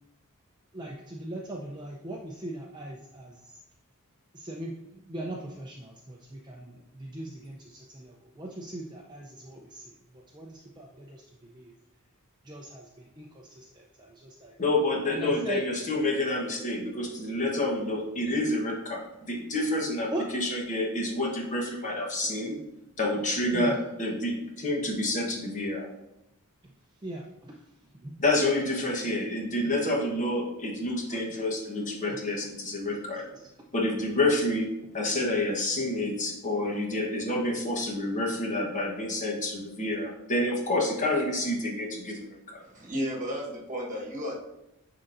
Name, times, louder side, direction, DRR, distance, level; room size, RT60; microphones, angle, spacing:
voice 1, 0.7-3.6 4.3-11.7 12.4-14.5 15.1-15.6 20.1-20.3 23.5-23.8 27.0-27.6 27.9-28.1 31.1-31.4 33.3-33.5, right 1 dB, 20° right, -1 dB, 0.5 m, -40 dB
voice 2, 14.6-22.6 23.0-25.9 28.2-33.3 33.7-34.7 34.9-42.6, left 1 dB, 35° left, -1 dB, 1.2 m, -28 dB
voice 3, 42.6-44.4, equal, 35° right, -2 dB, 1.3 m, -33 dB
10.0 x 3.9 x 2.6 m, 0.93 s
head